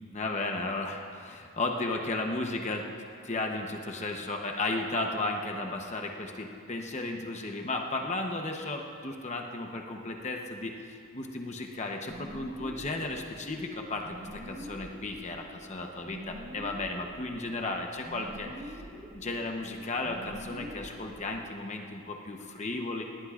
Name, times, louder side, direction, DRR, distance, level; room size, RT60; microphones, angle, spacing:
voice 1, 0.1-2.9 3.2-18.8 19.1-23.0, left 2 dB, 30° left, 2 dB, 0.9 m, -34 dB
sound 1, 12.1-21.5, equal, 35° right, 1.6 m, -46 dB
20.0 x 18.0 x 2.5 m, 2.5 s
head